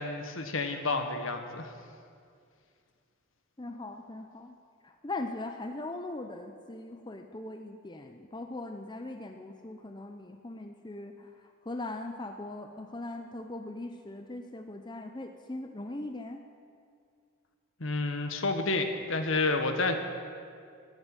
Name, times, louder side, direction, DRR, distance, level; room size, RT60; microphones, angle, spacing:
voice 1, 0.0-1.7 17.8-20.0, left 3 dB, 65° left, 6 dB, 1.4 m, -30 dB
voice 2, 3.6-4.5 4.8-11.3 11.6-16.4, left 2 dB, 20° left, 5 dB, 0.6 m, -40 dB
13.5 x 11.0 x 9.1 m, 2.3 s
head